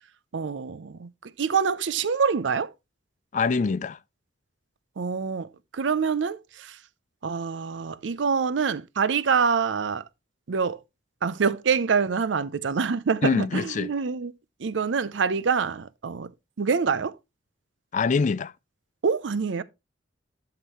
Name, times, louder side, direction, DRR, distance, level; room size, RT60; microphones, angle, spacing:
voice 1, 0.3-1.1 1.4-2.7 5.0-6.8 7.2-10.0 10.5-10.8 11.2-14.3 14.6-16.3 16.6-17.1 19.0-19.6, right 5 dB, 75° right, 0.5 m, -26 dB
voice 2, 3.3-4.0 13.2-13.9 17.9-18.5, left 4 dB, 40° left, 0.4 m, -24 dB
11.0 x 5.9 x 3.0 m
head